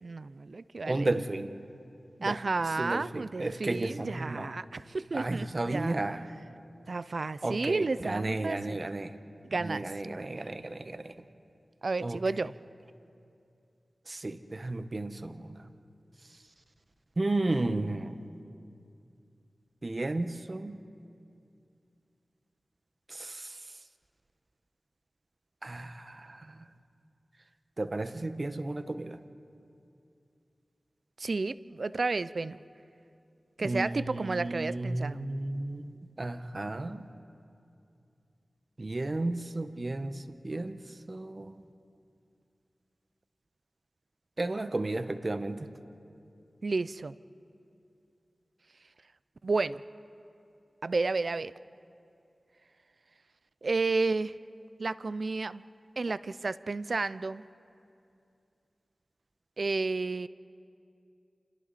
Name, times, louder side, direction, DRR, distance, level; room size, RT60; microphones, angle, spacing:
voice 1, 0.0-1.1 2.2-6.0 6.9-8.8 9.4-9.9 11.8-12.5 31.2-32.6 33.6-35.2 46.6-47.2 49.4-49.8 50.8-51.5 53.6-54.3 54.8-55.6 56.0-57.4 59.6-60.3, right 3 dB, 65° right, 16 dB, 0.5 m, -31 dB
voice 2, 0.9-1.6 2.2-2.4 2.8-4.5 5.1-6.2 7.4-9.1 9.6-11.1 12.0-12.2 14.1-15.6 17.2-18.2 19.8-20.8 23.1-23.6 25.6-26.6 27.8-29.2 33.6-35.9 36.2-37.0 38.8-40.8 41.1-41.5 44.4-45.7, right 2 dB, 50° right, 10 dB, 1.1 m, -33 dB
29.5 x 27.0 x 4.2 m, 2.6 s
cardioid pair, 40°, 0 cm